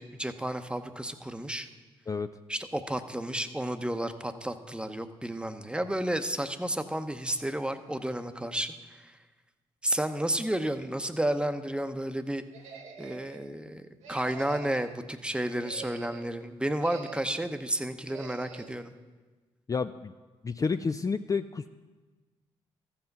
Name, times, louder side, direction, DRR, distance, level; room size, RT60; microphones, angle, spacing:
voice 1, 0.0-1.7 2.5-9.2 9.8-12.4 13.0-18.9, right 1 dB, 10° right, 9 dB, 0.8 m, -32 dB
sound 1, 12.5-13.5 14.0-15.0 15.4-16.3 16.8-17.6 18.1-18.8, right 5 dB, 75° right, 1.0 m, -45 dB
voice 2, 19.7-20.1 20.4-21.7, left 5 dB, 30° left, 10 dB, 0.3 m, -30 dB
14.0 x 5.9 x 5.3 m, 1.3 s
supercardioid pair, 50°, 12 cm